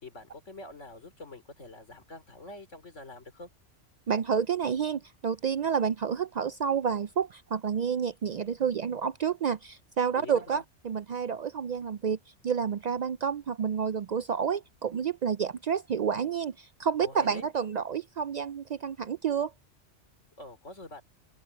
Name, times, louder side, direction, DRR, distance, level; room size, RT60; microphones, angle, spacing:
voice 1, 0.0-3.5 10.1-10.6 17.0-17.5 20.4-21.0, left 2 dB, 75° left, 3.9 m, -46 dB
voice 2, 4.1-12.2 12.4-19.5, right 7 dB, 85° right, 0.3 m, -29 dB
open air
omnidirectional pair, 1.3 m